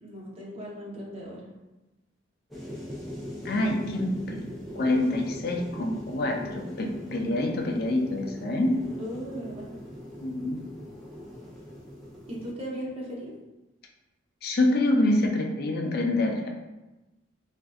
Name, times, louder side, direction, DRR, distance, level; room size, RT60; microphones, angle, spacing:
voice 1, 0.0-1.4 9.0-9.8 12.3-13.3, equal, 30° right, -5 dB, 0.8 m, -37 dB
sound 1, 2.5-12.5, equal, ahead, 0.6 m, -41 dB
voice 2, 3.4-4.4 4.7-8.8 10.2-10.6 14.4-16.5, left 1 dB, 55° left, 1 dB, 0.5 m, -26 dB
3.6 x 2.5 x 2.3 m, 1.0 s
head